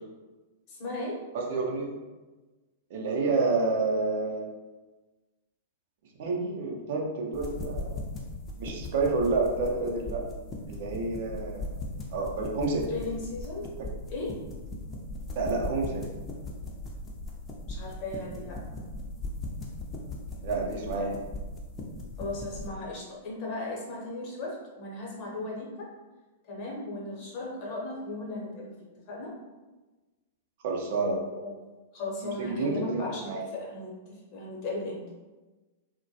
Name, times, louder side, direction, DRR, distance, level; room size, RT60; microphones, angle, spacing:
voice 1, 0.7-1.2 12.9-13.7 14.1-14.4 17.7-18.6 22.2-25.9 26.5-28.8 29.1-29.3 31.0-31.6 31.9-34.0 34.3-35.0, left 2 dB, 45° left, -3 dB, 0.8 m, -36 dB
voice 2, 1.3-1.9 2.9-4.5 6.2-8.0 8.6-10.2 10.7-11.8 12.1-12.9 15.4-16.1 20.4-21.2 30.6-31.1 32.4-33.4, right 3 dB, 60° right, -1 dB, 0.5 m, -29 dB
sound 1, 7.3-22.7, left 2 dB, 25° left, 0.5 m, -38 dB
2.2 x 2.1 x 2.7 m, 1.2 s
figure-of-eight pair, 100°, 0 cm